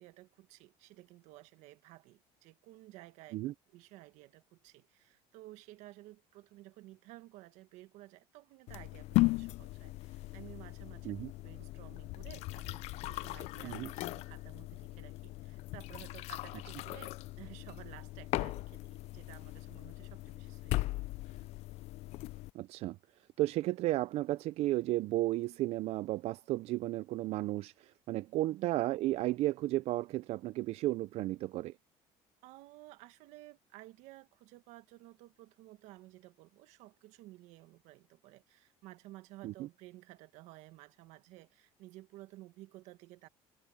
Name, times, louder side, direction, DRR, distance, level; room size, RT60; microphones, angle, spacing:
voice 1, 0.0-3.4 3.7-11.1 11.4-21.5 28.5-28.7 32.4-43.3, right 18 dB, 75° right, 1.6 m, -54 dB
sound 1, 8.7-22.5, left 20 dB, 65° left, 0.5 m, -38 dB
voice 2, 22.5-23.0 23.4-31.7 39.4-39.7, right 16 dB, 60° right, 0.5 m, -33 dB
cardioid pair, 115°, 12 cm